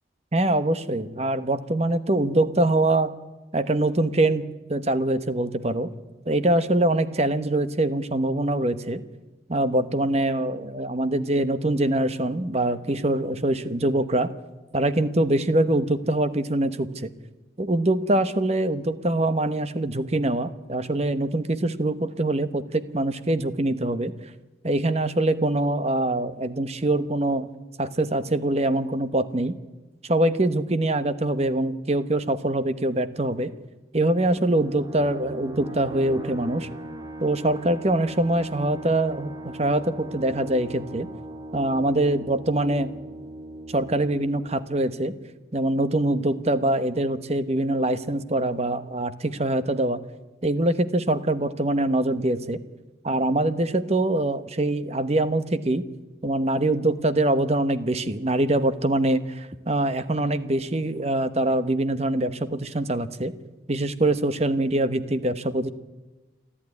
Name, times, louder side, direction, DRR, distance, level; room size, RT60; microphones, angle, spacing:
voice 1, 0.3-3.1 3.5-5.9 6.3-9.0 9.5-14.3 14.7-17.1 17.6-24.1 24.6-27.5 27.8-29.5 30.0-33.5 33.9-36.7 37.2-41.1 41.5-42.9 43.7-45.1 45.5-50.0 50.4-52.6 53.0-55.8 56.2-63.3 63.7-65.7, right 1 dB, 35° right, 12 dB, 1.0 m, -24 dB
sound 1, 34.4-45.6, right 1 dB, 20° right, 2.4 m, -40 dB
28.5 x 11.5 x 9.7 m, 1.2 s
head